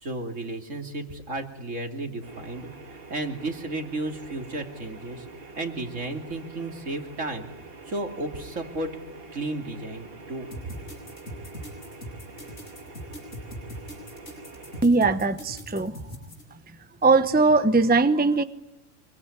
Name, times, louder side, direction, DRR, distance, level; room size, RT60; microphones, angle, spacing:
voice 1, 0.0-5.2 5.5-7.5 7.9-8.9 9.3-10.5, right 2 dB, 80° right, 4 dB, 3.2 m, -33 dB
sound 1, 2.2-14.8, right 3 dB, 50° right, 1.9 m, -45 dB
sound 2, 10.5-16.4, equal, 70° left, 6.4 m, -40 dB
voice 2, 14.8-16.0 17.0-18.4, right 3 dB, 10° right, 11 dB, 0.8 m, -20 dB
25.5 x 23.5 x 9.8 m, 0.92 s
omnidirectional pair, 1.3 m